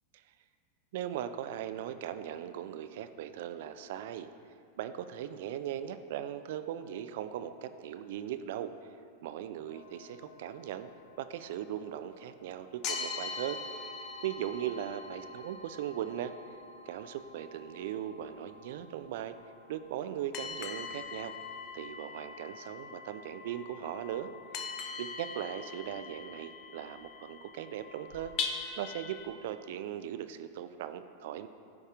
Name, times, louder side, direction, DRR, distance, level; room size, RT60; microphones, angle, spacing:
voice 1, 0.9-4.3 4.8-8.7 9.2-10.9 11.2-16.3 16.9-19.4 19.7-21.3 21.7-24.3 25.0-28.3 28.8-31.5, right 10 dB, 55° right, 10 dB, 0.3 m, -39 dB
sound 1, 9.7-12.5 12.8-29.3, left 5 dB, 40° left, 0.6 m, -43 dB
14.0 x 5.3 x 2.4 m, 2.5 s
figure-of-eight pair, 90°, 0 cm